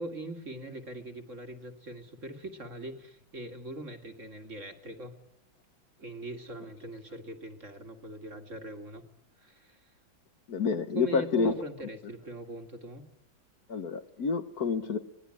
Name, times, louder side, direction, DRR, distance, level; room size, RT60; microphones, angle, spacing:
voice 1, 0.0-5.1 6.0-9.0 9.4-9.9 10.9-13.0, right 2 dB, 40° right, 5 dB, 2.4 m, -41 dB
voice 2, 10.5-11.5 13.7-15.0, left 5 dB, 55° left, 9 dB, 1.5 m, -28 dB
25.5 x 19.0 x 9.9 m, 0.85 s
omnidirectional pair, 2.1 m